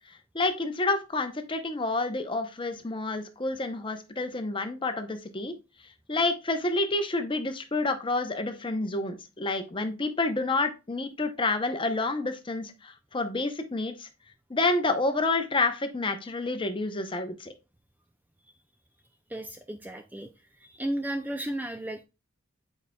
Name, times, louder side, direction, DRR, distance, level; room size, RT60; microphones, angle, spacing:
voice 1, 0.3-5.5 6.1-14.1 14.5-17.5, left 2 dB, 25° left, 8 dB, 0.7 m, -29 dB
voice 2, 19.3-20.3 20.6-22.0, right 1 dB, 10° right, 6 dB, 0.3 m, -34 dB
9.1 x 4.9 x 2.2 m, 0.28 s
head